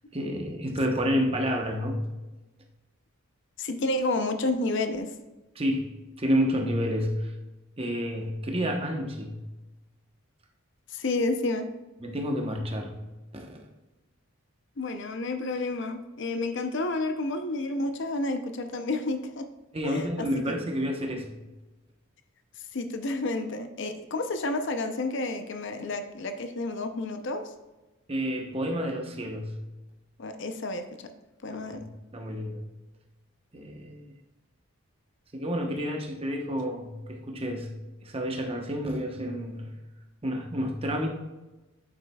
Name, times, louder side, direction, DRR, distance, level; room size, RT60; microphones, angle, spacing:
voice 1, 0.1-2.1 5.5-5.9 6.2-7.3 7.8-9.4 12.0-13.0 13.3-13.6 19.7-21.4 28.1-29.6 31.6-32.6 33.5-34.1 35.3-39.8 40.2-41.1, equal, 25° right, 2 dB, 0.9 m, -30 dB
voice 2, 3.6-5.1 10.9-11.7 14.8-19.5 19.8-20.5 22.7-27.5 30.2-31.1 31.4-31.9, left 2 dB, 55° left, 7 dB, 0.6 m, -30 dB
8.8 x 7.4 x 2.3 m, 1.1 s
head